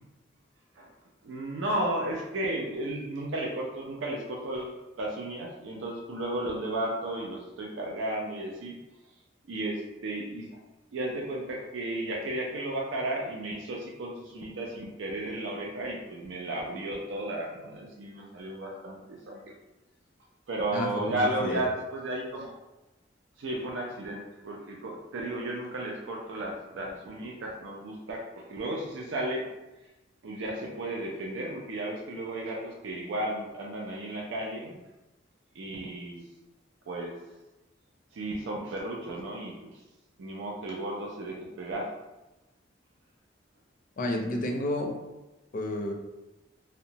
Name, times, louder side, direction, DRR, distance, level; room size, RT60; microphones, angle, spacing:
voice 1, 1.2-8.8 9.5-10.6 10.9-19.4 20.5-22.5 23.4-29.5 30.2-34.8 35.6-36.2 36.9-37.1 38.1-39.8 40.2-41.9, right 1 dB, 80° right, -1 dB, 0.4 m, -34 dB
voice 2, 20.7-21.6 44.0-44.9 45.5-45.9, left 1 dB, 45° left, 2 dB, 0.4 m, -31 dB
2.8 x 2.1 x 2.7 m, 1.0 s
head